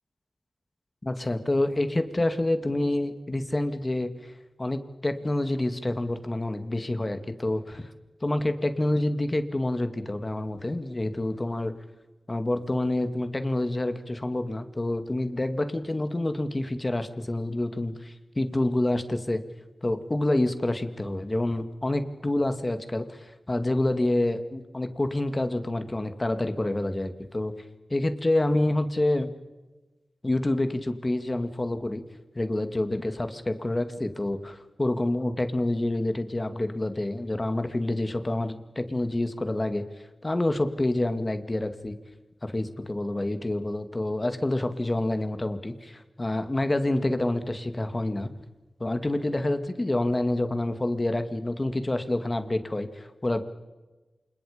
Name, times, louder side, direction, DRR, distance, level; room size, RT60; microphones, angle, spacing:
voice 1, 1.0-4.3 4.6-7.9 8.2-11.7 12.3-19.4 19.8-27.5 27.9-29.3 30.2-32.0 32.4-39.8 40.2-42.0 42.4-48.3 48.8-53.4, left 1 dB, 30° left, 8 dB, 2.2 m, -27 dB
28.5 x 27.0 x 5.2 m, 1.2 s
wide cardioid pair, 60°, 0 cm